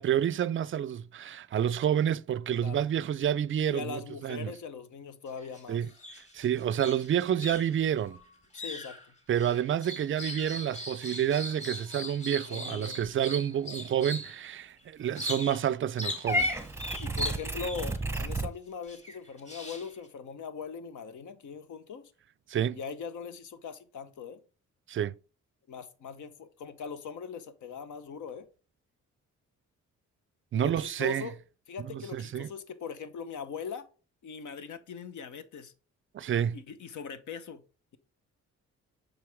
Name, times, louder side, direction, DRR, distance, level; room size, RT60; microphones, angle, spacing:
voice 1, 0.0-4.5 5.7-5.9 6.3-8.2 9.3-16.5 22.5-22.8 24.9-25.2 30.5-31.3 31.8-32.5 36.1-36.6, right 9 dB, 40° right, 0.4 m, -29 dB
voice 2, 3.6-5.9 8.5-9.0 12.5-13.1 17.0-22.1 22.7-24.4 25.7-28.5 30.5-31.3 31.7-33.9 34.2-35.7 36.5-37.6, left 6 dB, 70° left, 1.0 m, -41 dB
sound 1, 5.3-5.6 5.9-14.4 15.1-15.7 16.0-18.2 18.9-20.1, equal, 20° left, 2.9 m, -40 dB
Purr / Meow, 16.3-18.5, right 1 dB, 10° right, 0.9 m, -31 dB
6.4 x 4.7 x 3.4 m
cardioid pair, 85°, 31 cm